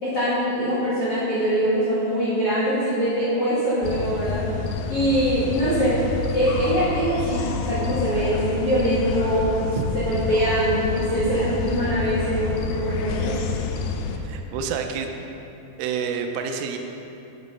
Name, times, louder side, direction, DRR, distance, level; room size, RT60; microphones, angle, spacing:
voice 1, 0.0-4.4 4.9-6.0 6.3-9.6 9.9-13.3, equal, 60° left, -11 dB, 1.5 m, -23 dB
sound 1, 3.8-14.2, left 4 dB, 85° left, 2.4 m, -28 dB
voice 2, 14.2-15.3 15.8-16.8, right 6 dB, 85° right, 5 dB, 3.1 m, -28 dB
8.2 x 8.1 x 5.5 m, 2.9 s
omnidirectional pair, 5.6 m